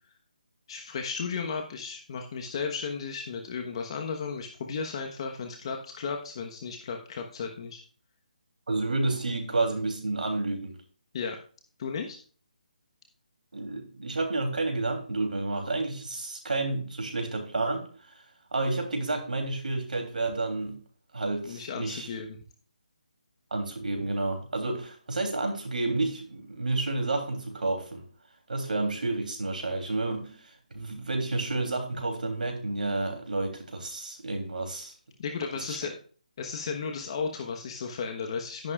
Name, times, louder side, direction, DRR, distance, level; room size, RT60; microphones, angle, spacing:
voice 1, 0.7-7.8 11.1-11.4 11.8-12.2 21.5-22.4 35.2-35.9 36.4-38.7, left 5 dB, 40° left, 3 dB, 1.2 m, -34 dB
voice 2, 8.7-10.7 13.5-17.9 18.5-20.8 21.1-22.1 23.5-28.0 28.5-30.3 30.7-34.9 35.5-35.8, right 2 dB, 75° right, 4 dB, 3.2 m, -30 dB
12.0 x 10.5 x 2.4 m, 0.42 s
figure-of-eight pair, 155°, 5 cm